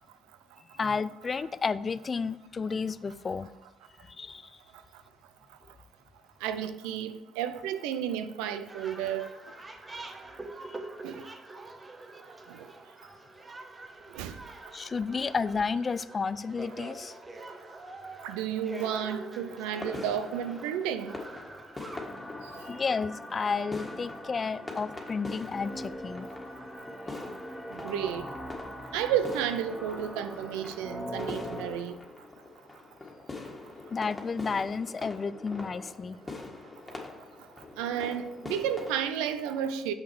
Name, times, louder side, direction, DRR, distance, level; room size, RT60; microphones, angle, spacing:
voice 1, 0.7-3.5 4.0-4.5 10.7-10.8 14.7-17.1 22.6-26.3 33.9-36.2, left 5 dB, 40° left, 0.3 m, -32 dB
voice 2, 6.4-9.3 11.0-11.3 12.5-12.6 14.1-14.4 18.2-21.2 27.7-28.3 28.9-31.9 37.8-39.9, right 9 dB, 90° right, 0.5 m, -32 dB
sound 1, 8.7-22.0, right 2 dB, 30° right, 1.1 m, -45 dB
sound 2, 19.6-39.0, left 3 dB, 20° left, 1.7 m, -44 dB
sound 3, 21.9-31.8, equal, ahead, 1.7 m, -42 dB
6.6 x 5.9 x 4.7 m
supercardioid pair, 65°, 0 cm